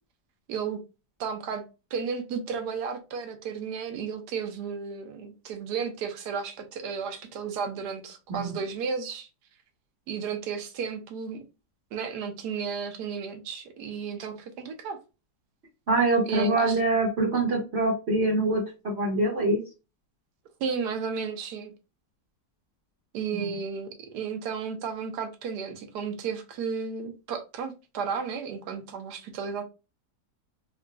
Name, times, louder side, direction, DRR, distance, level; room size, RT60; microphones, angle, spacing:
voice 1, 0.5-0.8 1.2-1.6 1.9-9.3 10.1-11.4 11.9-15.0 16.2-16.8 20.6-21.7 23.1-29.6, right 6 dB, 90° right, 1.2 m, -33 dB
voice 2, 15.9-19.6 23.3-23.5, right 2 dB, 45° right, 1.1 m, -25 dB
3.7 x 2.5 x 2.2 m
omnidirectional pair, 1.7 m